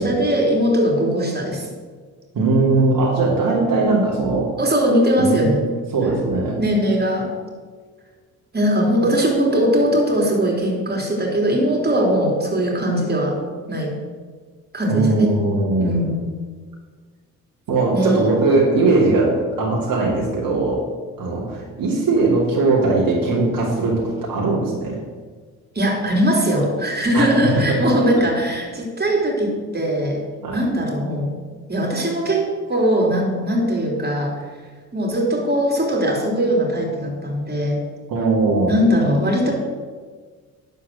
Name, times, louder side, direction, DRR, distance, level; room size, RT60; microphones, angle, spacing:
voice 1, 0.0-1.7 4.6-5.6 6.3-7.3 8.5-13.4 13.7-13.9 14.7-15.4 15.8-16.3 17.9-18.2 25.7-30.2 30.5-31.3 31.7-34.3 34.9-37.8 38.7-39.5, equal, 25° right, 0 dB, 3.3 m, -20 dB
voice 2, 2.3-4.5 5.2-5.5 5.9-6.6 14.9-16.0 17.7-20.8 21.2-25.0 27.1-27.8 30.4-30.6 38.1-38.7, right 3 dB, 55° right, -4 dB, 2.7 m, -19 dB
11.0 x 4.6 x 7.6 m, 1.5 s
hypercardioid pair, 45°, 42 cm